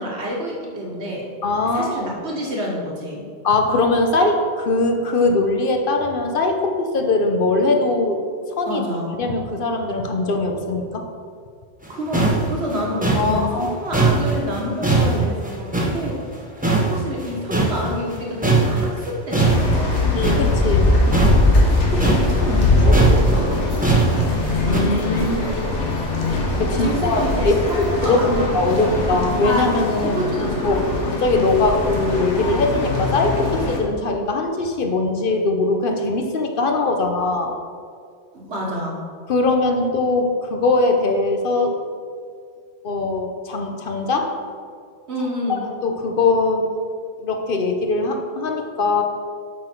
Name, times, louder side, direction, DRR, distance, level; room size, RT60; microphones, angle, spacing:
voice 1, 0.0-1.3 1.7-3.3 8.7-9.2 11.9-16.2 16.6-20.2 21.6-24.0 26.8-28.5 28.8-29.0 30.0-30.7 38.3-39.0 45.1-45.6, equal, 65° right, -2 dB, 1.7 m, -28 dB
voice 2, 1.4-2.1 3.4-8.2 8.6-8.8 9.2-11.0 13.1-13.7 20.1-20.9 24.7-25.5 26.6-30.2 30.6-37.5 39.3-41.7 42.8-44.3 45.5-46.7 47.2-49.0, left 2 dB, 50° left, 4 dB, 0.9 m, -21 dB
sound 1, 11.8-11.9 12.1-16.4 16.6-18.2 18.4-24.8, right 3 dB, 5° right, 1.0 m, -20 dB
sound 2, 19.4-33.8, left 2 dB, 75° left, 1.6 m, -21 dB
8.3 x 6.0 x 4.5 m, 2.2 s
omnidirectional pair, 1.2 m